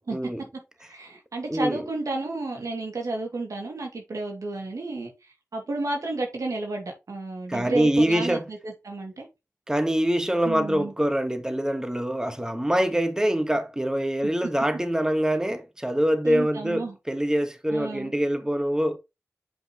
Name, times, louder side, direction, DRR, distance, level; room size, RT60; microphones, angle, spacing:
voice 1, 0.1-0.4 1.5-1.9 7.5-8.4 9.7-19.0, equal, 10° right, 1.3 m, -24 dB
voice 2, 0.9-5.1 5.5-9.3 10.4-10.9 16.2-16.9 17.7-18.1, right 2 dB, 90° right, 2.3 m, -31 dB
7.8 x 5.3 x 3.0 m
cardioid pair, 40°, 5 cm